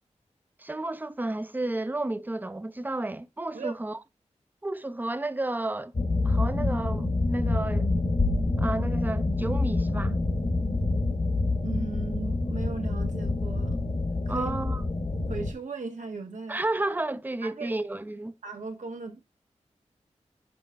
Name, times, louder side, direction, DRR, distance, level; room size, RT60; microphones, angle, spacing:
voice 1, 0.6-4.0 4.6-5.9 6.2-7.9 8.6-10.1 14.3-14.8 16.5-18.3, right 2 dB, 15° right, 0.5 m, -32 dB
sound 1, 5.9-15.5, left 2 dB, 50° left, 1.1 m, -27 dB
voice 2, 11.6-13.8 14.3-14.5 15.3-16.6 17.4-17.8 18.4-19.2, right 4 dB, 90° right, 1.4 m, -37 dB
5.9 x 5.2 x 3.3 m
wide cardioid pair, 100°, 12 cm